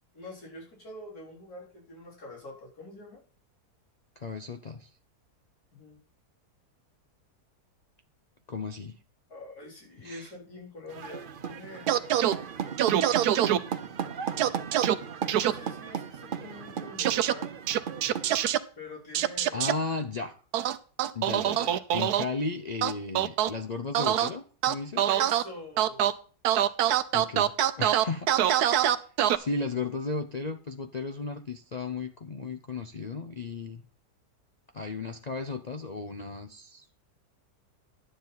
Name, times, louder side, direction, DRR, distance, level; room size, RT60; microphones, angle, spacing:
voice 1, 0.1-3.2 5.7-6.0 9.3-11.9 12.9-13.4 15.4-17.5 18.7-19.7 25.1-26.1, left 1 dB, 70° left, -4 dB, 4.7 m, -45 dB
voice 2, 4.2-4.9 8.5-8.9 10.0-10.3 19.5-20.4 21.1-25.1 27.1-28.3 29.3-33.8 34.7-36.9, left 3 dB, 55° left, 7 dB, 0.4 m, -35 dB
sound 1, 10.9-18.5, right 7 dB, 50° right, 0.7 m, -36 dB
sound 2, 11.9-12.3 12.8-13.6 14.4-14.9 15.3-15.5 17.0-17.3 17.7-18.6 19.1-19.7 20.5-22.2 22.8-23.5 23.9-24.3 24.6-25.4 25.8-26.1 26.5-29.4, right 11 dB, 75° right, 1.2 m, -24 dB
11.5 x 9.5 x 4.0 m, 0.40 s
omnidirectional pair, 1.7 m